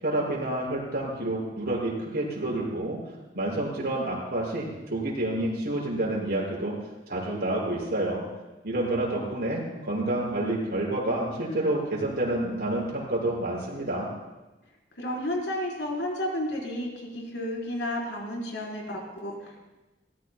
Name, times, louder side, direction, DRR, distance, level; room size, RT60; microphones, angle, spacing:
voice 1, 0.0-3.0 3.3-6.7 7.1-8.2 8.6-14.1, right 1 dB, 60° right, -4 dB, 6.0 m, -29 dB
voice 2, 15.0-19.6, left 1 dB, 80° left, -2 dB, 4.1 m, -32 dB
23.0 x 18.0 x 2.2 m, 1.1 s
head